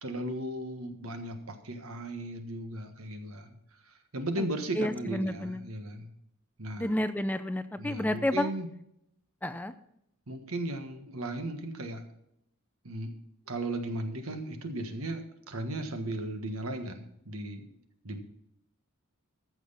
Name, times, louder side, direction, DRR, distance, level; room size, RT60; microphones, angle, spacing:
voice 1, 0.0-3.5 3.9-6.1 6.6-6.9 7.8-8.7 10.3-12.0 12.8-13.1 13.5-17.7 18.0-18.2, right 1 dB, 75° right, 7 dB, 1.5 m, -36 dB
voice 2, 4.8-5.6 6.8-8.5 9.4-9.7, left 1 dB, 10° left, 11 dB, 0.4 m, -30 dB
14.0 x 6.3 x 5.7 m, 0.76 s
head